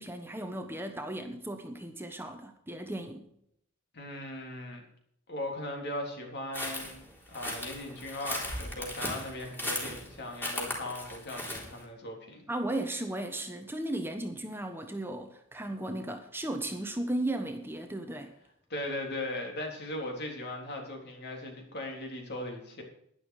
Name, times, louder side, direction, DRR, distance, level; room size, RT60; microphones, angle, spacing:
voice 1, 0.0-3.3 12.5-18.3, right 1 dB, 10° right, 6 dB, 1.1 m, -35 dB
voice 2, 3.9-4.8 5.3-12.4 18.7-22.8, left 1 dB, 55° left, 2 dB, 3.6 m, -38 dB
sound 1, 6.5-11.8, left 1 dB, 10° left, 3.8 m, -37 dB
12.0 x 11.0 x 4.9 m, 0.73 s
head